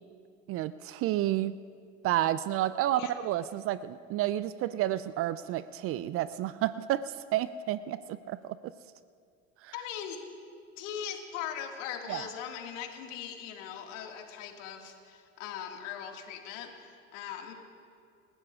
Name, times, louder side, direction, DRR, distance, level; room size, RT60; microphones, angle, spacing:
voice 1, 0.5-1.6 2.0-8.7 9.6-9.7 12.1-12.2, right 13 dB, 35° right, 15 dB, 0.4 m, -30 dB
voice 2, 9.7-10.2 10.8-17.5, left 9 dB, 65° left, 3 dB, 2.0 m, -40 dB
27.5 x 15.5 x 2.4 m, 2.3 s
hypercardioid pair, 80°, 41 cm